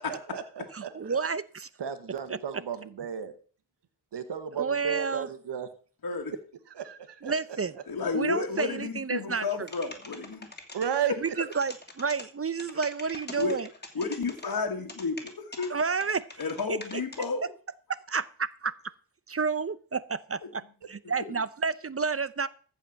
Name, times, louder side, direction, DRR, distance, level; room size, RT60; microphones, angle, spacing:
voice 1, 0.0-1.2 1.8-3.3 4.1-5.7 6.7-7.3 10.7-11.6, right 8 dB, 85° right, 10 dB, 1.2 m, -34 dB
voice 2, 0.7-1.7 2.3-2.4 4.5-5.3 7.2-7.7 8.1-9.7 11.2-13.7 15.7-16.3 16.7-17.0 17.9-18.7 19.3-22.5, right 5 dB, 35° right, 17 dB, 0.7 m, -30 dB
voice 3, 6.0-6.3 7.9-10.5 13.4-13.6 14.0-15.7 16.4-17.5, left 4 dB, 60° left, 2 dB, 1.8 m, -31 dB
sound 1, 9.7-10.9 11.3-12.2 12.6-14.5 14.9-15.7 16.0-17.3, left 2 dB, 25° left, 2.7 m, -43 dB
14.0 x 5.4 x 7.1 m, 0.42 s
cardioid pair, 55°, 41 cm